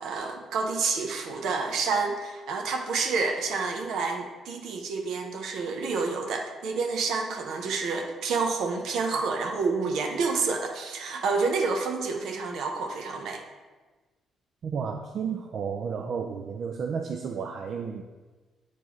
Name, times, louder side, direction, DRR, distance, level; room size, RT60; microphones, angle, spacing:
voice 1, 0.0-13.4, right 4 dB, 80° right, 4 dB, 0.8 m, -29 dB
voice 2, 14.6-18.0, right 6 dB, 60° right, 4 dB, 0.4 m, -32 dB
8.3 x 4.5 x 3.1 m, 1.3 s
cardioid pair, 90°, 0 cm